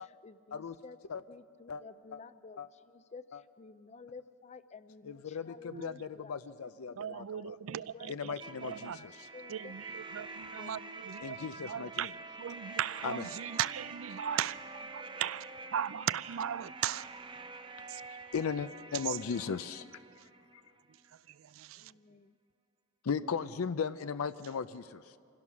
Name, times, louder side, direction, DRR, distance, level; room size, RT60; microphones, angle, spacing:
voice 1, 0.0-1.0 1.3-11.1 11.3-11.7 21.8-22.4, left 4 dB, 30° left, 12 dB, 0.4 m, -53 dB
voice 2, 5.1-7.6 8.1-9.3 11.2-12.1 13.0-13.3 18.1-19.9 23.0-25.2, left 6 dB, 85° left, 12 dB, 0.5 m, -37 dB
voice 3, 7.0-9.0 9.5-11.4 11.6-12.1 12.4-14.6 14.9-17.1 17.9-18.0 21.5-21.9, right 9 dB, 70° right, 18 dB, 0.4 m, -37 dB
sound 1, 8.4-21.1, right 3 dB, 25° right, 0.7 m, -47 dB
25.5 x 17.0 x 6.2 m, 2.3 s
head